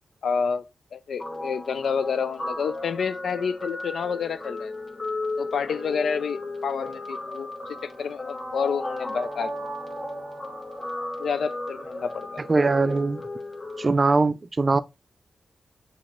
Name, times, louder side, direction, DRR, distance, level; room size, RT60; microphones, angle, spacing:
voice 1, 0.2-4.7 5.4-7.5 7.8-9.7 11.2-12.5, left 6 dB, 80° left, 0.4 m, -29 dB
Guitar, 1.2-13.9, left 2 dB, 40° left, 1.1 m, -35 dB
voice 2, 12.5-13.2 13.8-14.8, right 3 dB, 35° right, 0.4 m, -21 dB
7.1 x 2.9 x 2.4 m
cardioid pair, 75°, 0 cm